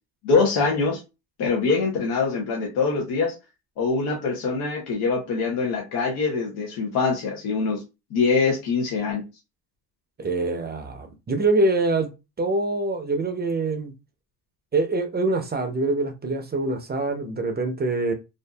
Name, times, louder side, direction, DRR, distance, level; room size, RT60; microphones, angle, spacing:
voice 1, 0.2-1.0 1.4-3.3 3.8-7.8 8.1-9.2, left 4 dB, 80° left, 0.8 m, -23 dB
voice 2, 10.2-12.1 12.4-13.9 14.7-18.1, right 2 dB, 25° right, 0.5 m, -24 dB
2.5 x 2.5 x 2.2 m
supercardioid pair, 75°, 37 cm